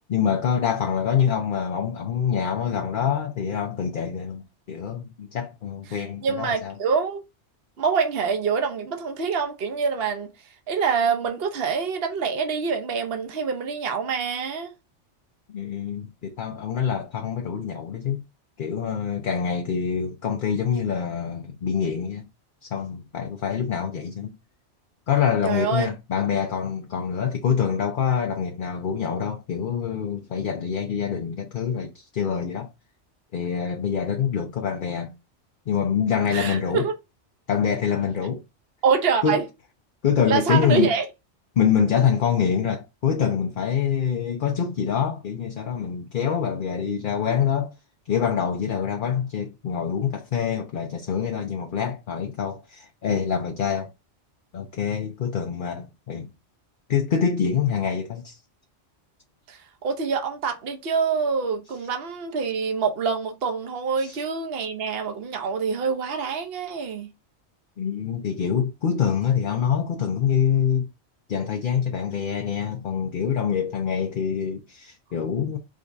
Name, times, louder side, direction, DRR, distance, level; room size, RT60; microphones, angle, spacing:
voice 1, 0.1-6.7 15.5-18.2 18.6-22.2 22.6-24.3 25.1-32.7 33.3-35.1 35.7-36.9 37.5-38.4 39.2-39.4 40.0-40.9 41.6-47.7 48.1-53.9 54.5-56.3 56.9-58.4 64.0-64.2 67.8-70.9 71.3-75.6, left 7 dB, 50° left, 0.7 m, -25 dB
voice 2, 5.9-7.2 7.8-10.3 10.7-14.7 25.4-25.9 36.3-36.9 38.8-39.4 40.3-41.0 59.5-67.1, right 5 dB, 60° right, 1.1 m, -25 dB
5.0 x 3.5 x 2.6 m
omnidirectional pair, 1.2 m